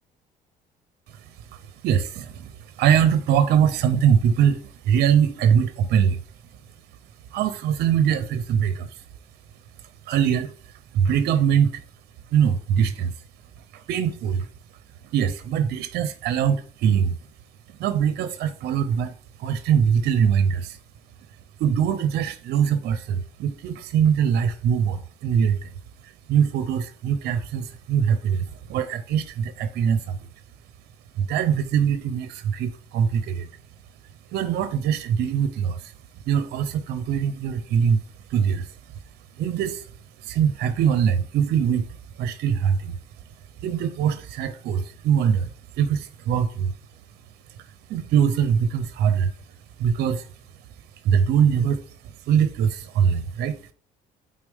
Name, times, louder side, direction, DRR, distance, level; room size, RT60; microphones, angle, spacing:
voice 1, 1.1-6.2 7.3-9.1 10.1-11.8 12.3-13.1 13.7-14.5 15.0-17.2 17.7-19.1 19.4-20.8 21.6-25.7 26.0-30.2 31.2-33.5 34.3-35.9 36.3-38.0 38.3-38.9 39.3-39.9 40.2-43.0 43.6-46.7 47.6-49.3 49.8-50.3 51.0-53.6, right 8 dB, 75° right, 0.7 m, -23 dB
8.7 x 3.8 x 3.5 m
cardioid pair, 110°, 17 cm